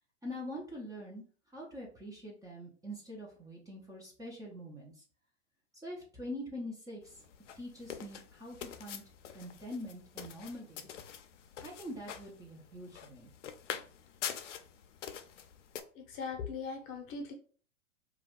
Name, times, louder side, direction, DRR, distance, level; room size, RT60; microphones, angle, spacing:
voice 1, 0.2-1.2 1.5-4.9 5.8-7.2 7.6-9.0 9.3-10.9 11.6-13.3, left 1 dB, 10° right, -3 dB, 0.6 m, -44 dB
sound 1, 7.0-15.8, left 8 dB, 70° left, 0.5 m, -45 dB
voice 2, 15.9-17.3, left 5 dB, 35° left, 3 dB, 0.7 m, -40 dB
2.3 x 2.3 x 3.5 m, 0.43 s
hypercardioid pair, 100°, 37 cm